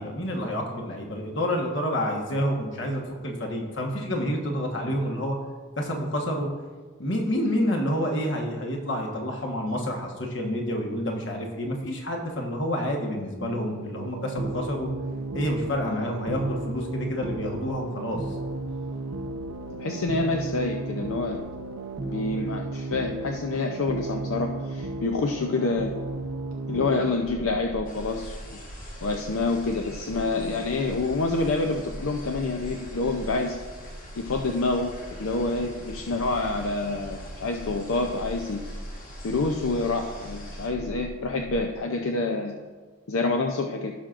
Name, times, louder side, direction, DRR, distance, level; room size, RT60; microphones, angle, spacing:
voice 1, 0.0-5.4 5.8-6.5 7.0-14.9 15.3-18.2, equal, 55° left, 0 dB, 1.3 m, -28 dB
sound 1, 13.4-27.0, right 2 dB, 75° right, 0.7 m, -34 dB
voice 2, 19.8-21.4 22.0-25.9 26.7-28.4 29.0-33.6 34.2-38.6 39.2-42.6 43.1-43.9, left 3 dB, 75° left, 3 dB, 0.6 m, -27 dB
sound 2, 27.3-41.8, right 1 dB, 40° right, 0.6 m, -41 dB
sound 3, 27.8-40.7, left 1 dB, 40° left, 1.7 m, -47 dB
16.0 x 5.9 x 2.5 m, 1.4 s
head